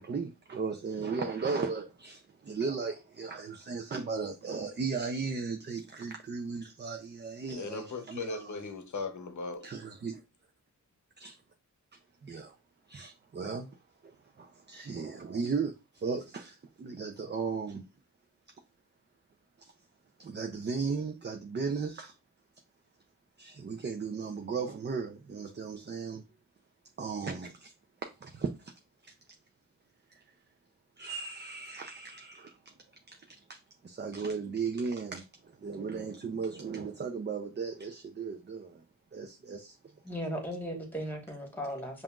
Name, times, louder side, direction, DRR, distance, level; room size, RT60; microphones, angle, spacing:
voice 1, 0.0-8.6 9.6-10.2 11.2-11.4 12.2-12.5 12.9-13.7 14.4-17.8 19.6-19.7 20.2-22.1 23.4-26.2 27.0-27.7 28.2-28.5 31.0-32.5 33.1-33.2 33.5-33.6 33.8-35.2 35.6-38.8 39.1-39.7, right 5 dB, 35° right, 0.4 m, -36 dB
voice 2, 7.5-9.7, left 3 dB, 60° left, 0.8 m, -38 dB
voice 3, 40.0-42.0, equal, 5° left, 1.3 m, -37 dB
5.5 x 2.5 x 2.3 m
wide cardioid pair, 70°, 33 cm